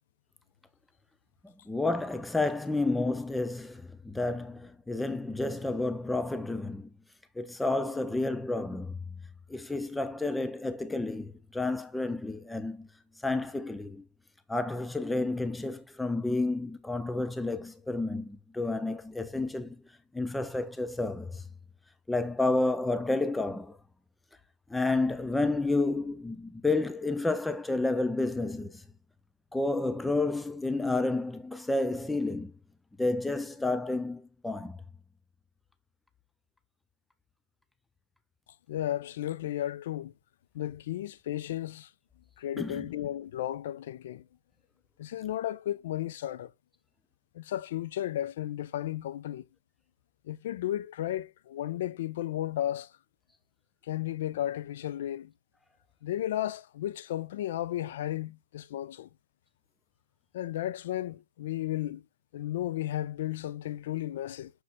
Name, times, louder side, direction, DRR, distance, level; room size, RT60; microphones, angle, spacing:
voice 1, 1.4-6.9 7.4-9.0 9.5-12.9 13.2-14.0 14.5-19.8 20.1-21.4 22.1-23.8 24.7-28.8 29.5-32.5 33.0-34.8 42.6-42.8, left 2 dB, 5° left, 0.3 m, -30 dB
voice 2, 38.7-40.1 40.5-41.9 42.4-44.3 45.0-46.5 47.3-49.4 50.2-52.9 53.8-55.3 56.0-59.1 60.3-62.0 62.3-64.5, left 13 dB, 50° left, 0.6 m, -34 dB
6.7 x 6.5 x 2.3 m
hypercardioid pair, 135°, 0 cm